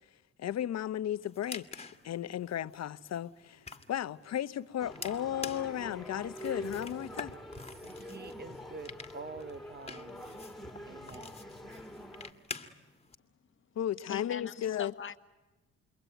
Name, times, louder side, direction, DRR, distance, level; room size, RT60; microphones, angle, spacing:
voice 1, 0.4-3.6 3.9-7.3 13.7-14.9, left 11 dB, 60° left, 1.0 m, -35 dB
sound 1, 1.2-13.1, left 4 dB, 20° left, 2.0 m, -48 dB
sound 2, 4.8-12.3, equal, ahead, 2.6 m, -45 dB
voice 2, 8.1-10.3 10.9-11.4, right 4 dB, 35° right, 1.3 m, -46 dB
voice 3, 14.1-15.2, left 7 dB, 40° left, 1.5 m, -41 dB
29.0 x 22.5 x 9.2 m
cardioid pair, 90°, 30 cm